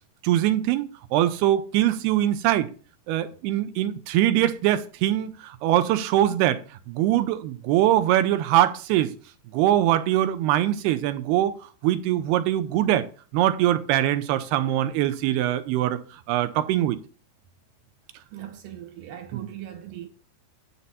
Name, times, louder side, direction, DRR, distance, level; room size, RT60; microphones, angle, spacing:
voice 1, 0.2-2.7 3.1-6.6 6.9-9.1 9.5-11.5 11.8-13.1 13.3-16.0 16.3-17.0 19.3-19.5, right 13 dB, 85° right, 2.8 m, -22 dB
voice 2, 18.3-20.1, right 11 dB, 70° right, 2.3 m, -39 dB
10.0 x 4.2 x 6.9 m
omnidirectional pair, 4.5 m